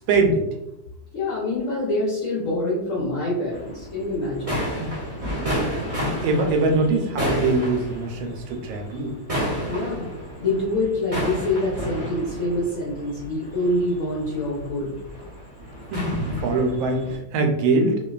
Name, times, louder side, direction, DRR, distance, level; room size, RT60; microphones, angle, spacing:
voice 1, 0.1-0.4 4.5-5.6 5.9-9.1 15.9-18.0, right 3 dB, 90° right, 3 dB, 1.3 m, -23 dB
voice 2, 1.1-4.6 9.6-10.1 10.4-14.9, left 2 dB, 75° left, -6 dB, 0.7 m, -25 dB
sound 1, 3.5-17.2, equal, 65° right, 0.3 m, -31 dB
3.1 x 2.3 x 2.3 m, 0.91 s
omnidirectional pair, 2.1 m